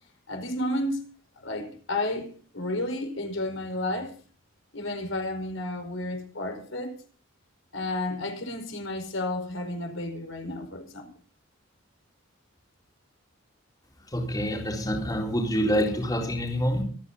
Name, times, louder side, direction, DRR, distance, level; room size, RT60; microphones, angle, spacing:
voice 1, 0.3-1.0 1.4-2.3 2.5-4.1 4.7-6.9 7.7-11.1, left 1 dB, 70° left, 4.7 m, -31 dB
voice 2, 14.1-16.8, equal, 20° left, 3.9 m, -26 dB
25.5 x 9.6 x 4.0 m
head